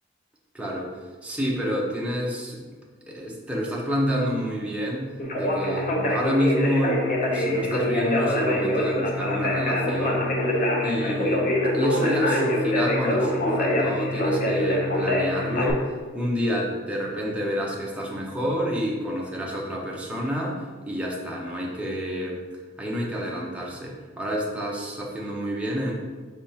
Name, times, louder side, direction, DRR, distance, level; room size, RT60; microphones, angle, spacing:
voice 1, 0.5-0.9 1.2-2.6 3.1-10.2 10.8-11.5 11.7-22.4 22.8-25.9, equal, 5° right, -3 dB, 0.6 m, -28 dB
Conversation, 5.2-15.7, left 1 dB, 40° left, 0.6 m, -24 dB
5.2 x 3.4 x 2.8 m, 1.4 s
head